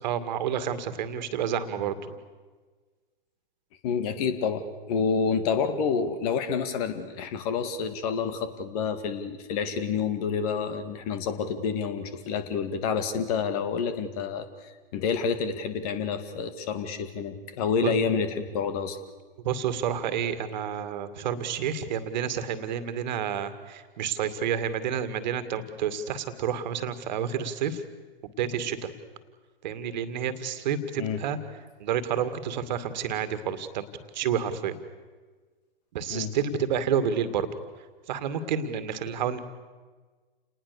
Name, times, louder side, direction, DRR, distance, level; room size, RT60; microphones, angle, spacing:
voice 1, 0.0-2.2 17.8-18.0 19.4-27.8 28.2-28.9 29.6-31.4 31.8-33.9 34.1-34.8 35.9-37.5 38.1-39.4, right 8 dB, 50° right, 11 dB, 2.2 m, -29 dB
voice 2, 3.8-19.0 31.0-31.2 36.1-36.3, left 6 dB, 40° left, 10 dB, 2.4 m, -28 dB
29.0 x 19.5 x 6.9 m, 1.4 s
figure-of-eight pair, 115°, 29 cm